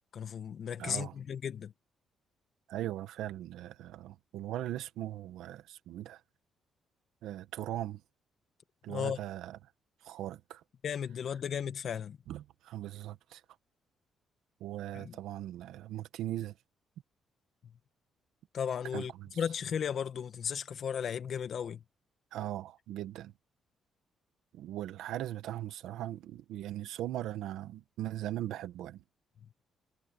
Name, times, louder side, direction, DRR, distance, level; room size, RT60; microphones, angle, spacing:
voice 1, 0.1-1.7 8.9-9.2 10.8-12.2 14.9-15.2 18.5-21.8, left 8 dB, 60° left, 1.8 m, -35 dB
voice 2, 0.8-1.2 2.7-6.2 7.2-8.0 8.8-9.6 10.0-10.6 12.3-13.4 14.6-16.5 18.9-19.3 22.3-23.3 24.5-29.0, right 13 dB, 85° right, 1.8 m, -39 dB
cardioid pair, 90°, 0 cm